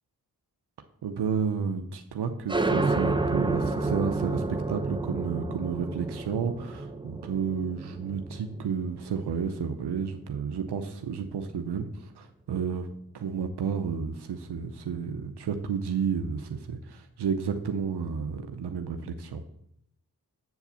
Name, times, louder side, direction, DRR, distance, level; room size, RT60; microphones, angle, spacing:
voice 1, 1.0-12.9 13.1-19.4, right 6 dB, 90° right, 7 dB, 0.7 m, -31 dB
sound 1, 2.5-9.8, right 3 dB, 10° right, 0.8 m, -30 dB
8.0 x 4.8 x 6.8 m, 0.74 s
cardioid pair, 40°, 39 cm